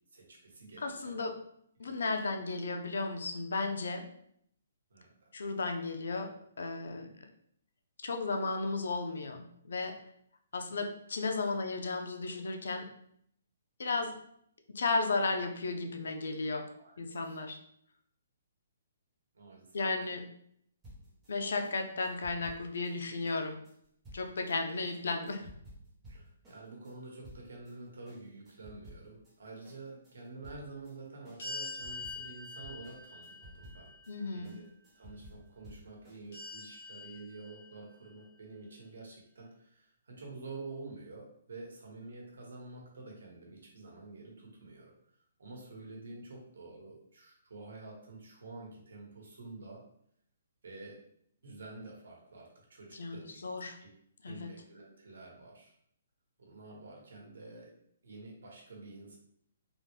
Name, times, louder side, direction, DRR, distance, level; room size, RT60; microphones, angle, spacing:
voice 1, 0.1-1.2 1.8-2.2 4.9-5.1 11.2-11.3 12.2-12.3 16.7-17.4 19.3-19.8 26.1-33.9 34.3-34.6 34.9-44.9 45.4-49.8 50.6-51.0 51.4-53.4 53.8-53.9 54.2-55.7 56.4-57.7 58.0-59.2, right 3 dB, 85° right, -1 dB, 1.2 m, -49 dB
voice 2, 0.8-1.4 1.8-4.1 5.3-6.3 6.6-7.1 8.0-10.0 10.5-12.9 13.8-14.1 14.7-16.6 17.0-17.6 19.7-20.3 21.3-23.6 24.1-25.5 34.1-34.6 52.9-53.8 54.2-54.5, left 3 dB, 80° left, 5 dB, 0.5 m, -34 dB
sound 1, 20.8-27.8 28.1-29.4 29.6-36.5, equal, 10° right, 0.7 m, -54 dB
sound 2, 31.4-34.5 36.3-38.1, left 3 dB, 50° left, 1.2 m, -45 dB
3.4 x 2.2 x 3.0 m, 0.70 s
hypercardioid pair, 170°, 0 cm